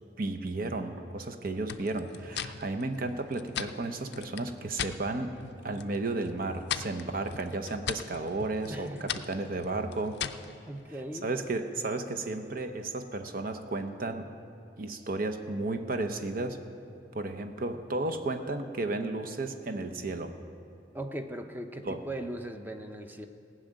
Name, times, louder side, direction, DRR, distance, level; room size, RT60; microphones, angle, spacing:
voice 1, 0.2-5.3 5.6-10.2 11.2-14.3 14.8-16.6 17.1-20.3 21.8-22.0, right 2 dB, 50° right, 7 dB, 0.8 m, -33 dB
sound 1, 1.7-5.0 5.4-6.0 6.2-10.5, left 9 dB, 65° left, 0.5 m, -38 dB
voice 2, 8.7-9.1 10.6-11.3 20.9-23.3, right 1 dB, 10° right, 6 dB, 0.7 m, -39 dB
17.5 x 6.4 x 8.9 m, 2.5 s
head